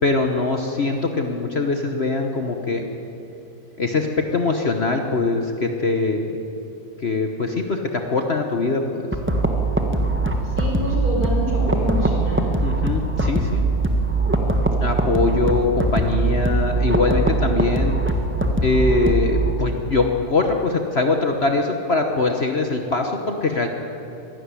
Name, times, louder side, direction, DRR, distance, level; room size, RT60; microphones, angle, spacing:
voice 1, 0.0-2.9 3.8-6.4 7.0-9.0 12.6-13.7 14.8-18.0 18.6-23.7, left 3 dB, 45° left, 3 dB, 1.4 m, -22 dB
sound 1, 9.1-19.5, right 2 dB, 10° right, 1.4 m, -21 dB
voice 2, 10.4-12.5, equal, 70° right, -3 dB, 6.3 m, -27 dB
23.5 x 12.5 x 9.9 m, 2.8 s
omnidirectional pair, 1.7 m